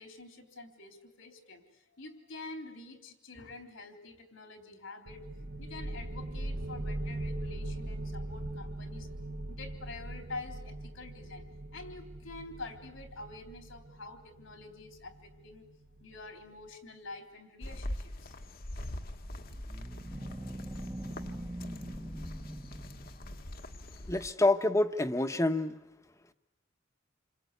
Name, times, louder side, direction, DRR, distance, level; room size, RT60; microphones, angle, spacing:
voice 1, 0.0-9.1 9.5-11.5 11.7-15.7 16.0-18.4 21.9-22.0, left 3 dB, 80° left, 5 dB, 3.6 m, -47 dB
sound 1, 5.1-16.5, right 1 dB, 50° right, 1.0 m, -41 dB
sound 2, 17.6-24.3, left 1 dB, 45° left, 1.3 m, -43 dB
sound 3, 19.2-23.6, right 1 dB, 10° right, 1.1 m, -42 dB
voice 2, 24.1-25.7, left 2 dB, 15° left, 9 dB, 1.1 m, -27 dB
28.5 x 25.0 x 8.3 m, 0.94 s
head